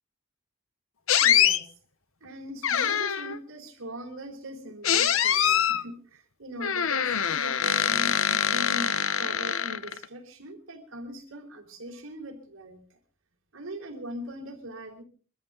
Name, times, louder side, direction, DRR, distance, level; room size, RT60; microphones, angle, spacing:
sound 1, 1.1-1.6 2.6-3.4 4.8-5.8 6.6-10.0, left 9 dB, 70° left, 0.9 m, -24 dB
voice 1, 1.2-1.7 2.2-12.8 13.5-15.0, equal, 65° right, 0 dB, 4.0 m, -40 dB
23.5 x 14.0 x 3.8 m, 0.39 s
head